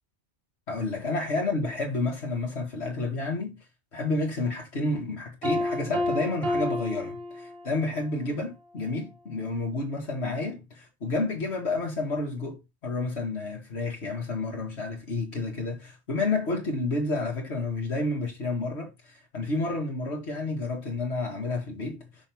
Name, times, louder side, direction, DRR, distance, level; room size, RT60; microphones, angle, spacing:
voice 1, 0.7-3.6 3.9-22.1, left 3 dB, 80° left, 2.1 m, -30 dB
Piano, 5.4-8.0, left 1 dB, 60° right, 1.8 m, -30 dB
6.2 x 3.5 x 6.1 m
omnidirectional pair, 1.1 m